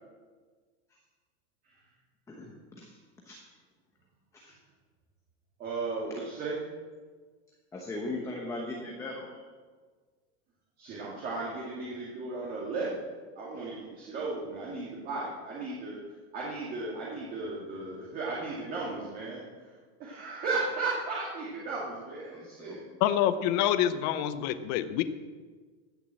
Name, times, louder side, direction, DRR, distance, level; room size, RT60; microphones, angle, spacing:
voice 1, 2.3-3.0 3.2-3.4 4.3-4.6 7.7-9.4 22.3-23.0, left 2 dB, 10° left, 0 dB, 1.0 m, -39 dB
voice 2, 5.6-6.6 10.8-13.0 13.4-16.0 16.3-22.9, right 3 dB, 25° right, -5 dB, 2.2 m, -35 dB
voice 3, 23.0-25.0, left 11 dB, 40° left, 13 dB, 0.7 m, -26 dB
15.5 x 7.5 x 7.6 m, 1.5 s
supercardioid pair, 180°, 33 cm